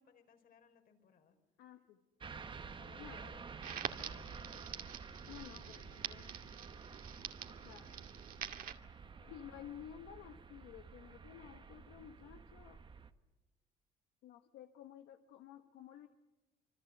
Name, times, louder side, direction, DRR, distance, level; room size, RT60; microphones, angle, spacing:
voice 1, 0.0-1.4 2.8-5.0 9.0-9.4, left 6 dB, 60° left, 6 dB, 4.8 m, -64 dB
voice 2, 1.6-2.0 3.0-3.4 5.3-6.3 7.6-8.1 9.3-12.8 14.2-16.1, left 10 dB, 85° left, 6 dB, 1.4 m, -53 dB
sound 1, 2.2-13.1, right 5 dB, 30° right, 1.4 m, -51 dB
Crackle, 3.6-8.7, right 9 dB, 60° right, 2.2 m, -46 dB
26.5 x 24.5 x 7.9 m, 1.1 s
cardioid pair, 110°, 17 cm